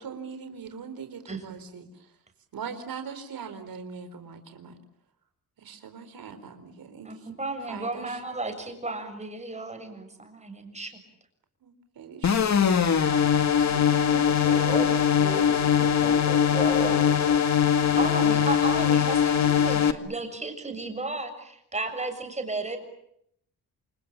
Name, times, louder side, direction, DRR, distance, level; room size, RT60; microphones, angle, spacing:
voice 1, 0.0-2.1 2.5-4.8 5.6-7.2 7.7-8.2 11.6-12.9 13.5-15.5, right 6 dB, 85° right, 8 dB, 4.5 m, -41 dB
voice 2, 7.0-11.0 18.0-22.8, right 2 dB, 20° right, 5 dB, 6.9 m, -34 dB
sound 1, 12.2-19.9, left 8 dB, 50° left, 2.1 m, -22 dB
voice 3, 14.4-17.4, left 2 dB, 25° left, 8 dB, 5.8 m, -33 dB
28.5 x 28.0 x 7.4 m, 0.74 s
wide cardioid pair, 145°, 34 cm